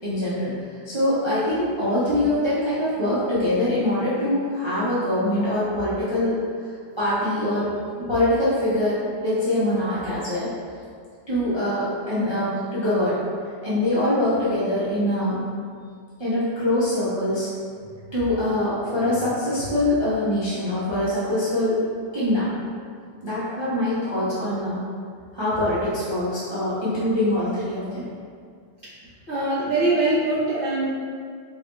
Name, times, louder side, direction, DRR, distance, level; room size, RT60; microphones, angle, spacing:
voice 1, 0.0-0.5 0.8-6.4 7.0-7.7 8.0-10.5 11.3-13.2 13.6-15.4 16.2-17.5 18.1-21.8 22.1-22.5 23.2-24.8 25.3-28.1, left 1 dB, 25° right, -12 dB, 0.6 m, -23 dB
voice 2, 29.3-30.9, right 2 dB, 45° left, -14 dB, 0.7 m, -22 dB
4.0 x 3.4 x 3.0 m, 2.1 s
omnidirectional pair, 2.1 m